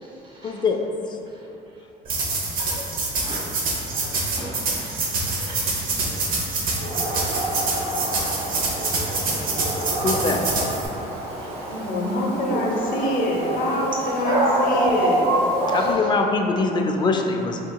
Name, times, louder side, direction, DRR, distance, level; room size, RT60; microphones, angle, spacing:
voice 1, 0.4-0.8 10.0-10.4 15.7-17.6, left 3 dB, 25° left, 3 dB, 0.3 m, -22 dB
sound 1, 2.1-10.9, right 3 dB, 55° right, 0.8 m, -26 dB
voice 2, 3.9-5.8 6.3-6.7 11.4-11.8 15.7-16.1 16.7-16.8, right 1 dB, 30° right, -5 dB, 1.1 m, -40 dB
Dog, 6.8-15.9, right 1 dB, 75° right, 1.5 m, -26 dB
voice 3, 11.7-15.2, left 1 dB, 55° left, -2 dB, 0.7 m, -25 dB
5.7 x 2.9 x 2.2 m, 2.9 s
cardioid pair, 125°, 17 cm